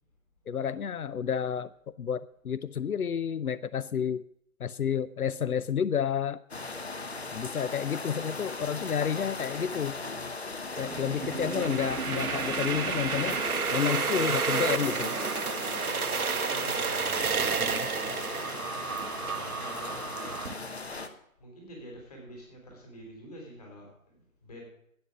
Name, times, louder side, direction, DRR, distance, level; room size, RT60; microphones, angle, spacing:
voice 1, 0.5-1.7 2.0-4.2 4.6-6.4 7.3-10.1 10.8-13.4 13.7-15.2 17.6-17.9, left 8 dB, 90° left, 16 dB, 0.6 m, -30 dB
sound 1, 6.5-21.1, left 3 dB, 45° left, 1.2 m, -38 dB
voice 2, 8.6-9.3 16.4-17.6 18.0-18.7 19.5-20.6 21.4-24.6, equal, 25° left, 0 dB, 3.7 m, -48 dB
sound 2, 10.8-20.5, right 6 dB, 85° right, 0.8 m, -31 dB
11.5 x 8.7 x 6.4 m, 0.73 s
figure-of-eight pair, 170°, 43 cm